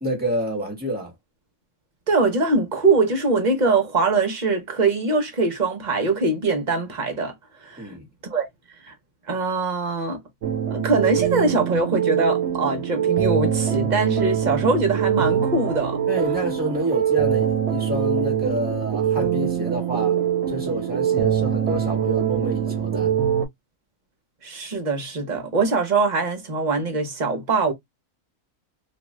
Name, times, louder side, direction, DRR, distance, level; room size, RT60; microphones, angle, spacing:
voice 1, 0.0-1.1 7.8-8.1 16.1-20.2 20.5-23.1, equal, 5° right, 1.2 m, -28 dB
voice 2, 2.1-7.3 7.6-7.9 8.3-8.5 8.8-8.9 9.3-10.2 10.7-16.0 24.4-27.7, right 3 dB, 40° right, 0.8 m, -22 dB
sound 1, 10.4-23.5, right 9 dB, 65° right, 0.9 m, -23 dB
2.6 x 2.4 x 3.1 m
omnidirectional pair, 1.4 m